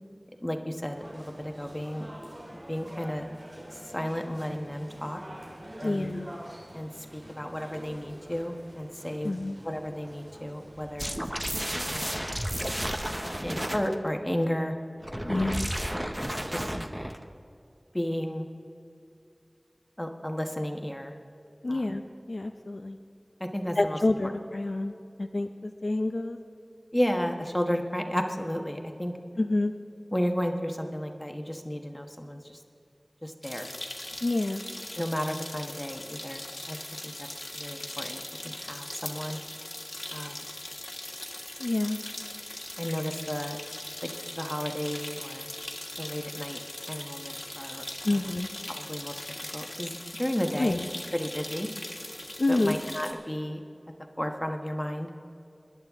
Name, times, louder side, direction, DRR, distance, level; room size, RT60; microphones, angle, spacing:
voice 1, 0.4-2.1 2.7-3.2 3.9-5.2 5.8-6.1 6.7-9.3 9.6-11.2 11.8-12.2 13.4-14.8 15.3-15.6 16.5-16.7 17.9-18.5 20.0-21.1 21.7-22.0 23.4-24.0 26.9-29.1 30.1-32.6 33.2-33.7 35.0-36.8 37.0-37.3 37.5-39.4 40.1-40.5 42.8-43.6 44.0-45.5 46.0-46.6 46.9-47.8 48.1-48.4 48.7-49.2 49.5-50.8 51.1-51.7 52.5-53.6 54.2-55.1, equal, 15° left, 4 dB, 1.3 m, -33 dB
sound 1, 0.9-12.8, right 1 dB, 75° right, 2.9 m, -46 dB
voice 2, 5.8-6.3 9.2-9.6 15.2-15.7 21.6-22.0 22.3-23.0 23.8-26.4 29.4-29.7 34.2-34.6 41.6-42.0 48.0-48.5 50.6-50.9 52.4-52.8, left 2 dB, 70° left, 7 dB, 0.5 m, -28 dB
sound 2, 11.0-14.0 15.0-17.2, equal, 15° right, 0.9 m, -32 dB
sound 3, 33.4-53.1, left 1 dB, 50° left, 1.7 m, -40 dB
20.5 x 11.0 x 3.6 m, 2.6 s
wide cardioid pair, 45°, 0 cm